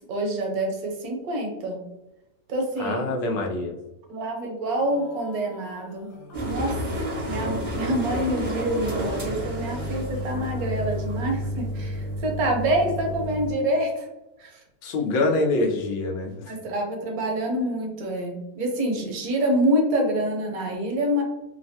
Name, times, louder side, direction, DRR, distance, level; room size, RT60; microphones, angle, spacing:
voice 1, 0.1-1.8 2.5-3.0 4.1-6.1 6.4-6.8 7.3-14.1 14.4-14.6 16.4-21.2, right 1 dB, 65° right, 1 dB, 1.0 m, -26 dB
voice 2, 2.8-3.7 14.8-16.5, left 2 dB, 80° left, 2 dB, 1.2 m, -25 dB
sound 1, 4.8-10.8, left 2 dB, 60° left, 1.0 m, -46 dB
sound 2, 6.3-13.5, equal, 50° right, 0.4 m, -30 dB
3.2 x 2.1 x 2.6 m, 0.97 s
omnidirectional pair, 1.9 m